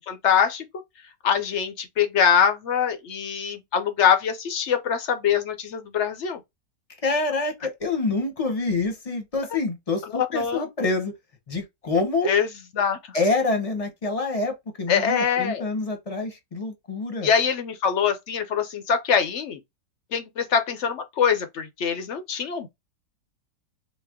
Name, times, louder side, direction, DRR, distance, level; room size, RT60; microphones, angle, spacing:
voice 1, 0.1-0.7 1.2-6.4 10.1-10.7 12.2-12.5 12.7-13.2 14.9-15.6 17.2-19.6 20.1-22.7, left 7 dB, 60° left, 0.8 m, -23 dB
voice 2, 7.0-11.1 11.5-12.3 13.1-17.3, left 3 dB, 25° left, 0.8 m, -26 dB
4.1 x 2.1 x 3.6 m
omnidirectional pair, 1.9 m